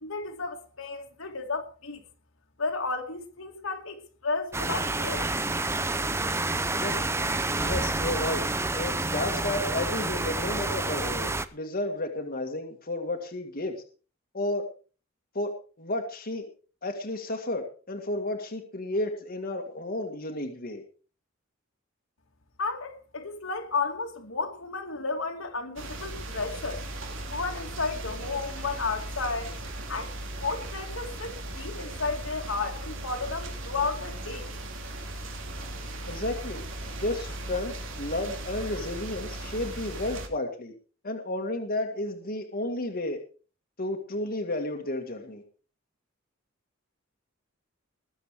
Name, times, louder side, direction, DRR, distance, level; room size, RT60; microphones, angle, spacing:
voice 1, 0.0-2.0 2.6-5.3 22.6-26.9 27.3-29.6 29.9-34.5, left 4 dB, 70° left, 2.6 m, -33 dB
sound 1, 4.5-11.5, right 2 dB, 15° right, 0.7 m, -29 dB
voice 2, 7.6-8.4 8.7-13.7 14.3-14.6 15.3-15.5 15.8-16.4 16.8-20.8 36.1-36.6 37.0-40.7 41.0-43.2 43.8-45.4, left 2 dB, 45° left, 2.0 m, -32 dB
sound 2, 25.8-40.3, right 1 dB, 65° right, 3.0 m, -37 dB
20.5 x 7.9 x 5.0 m
head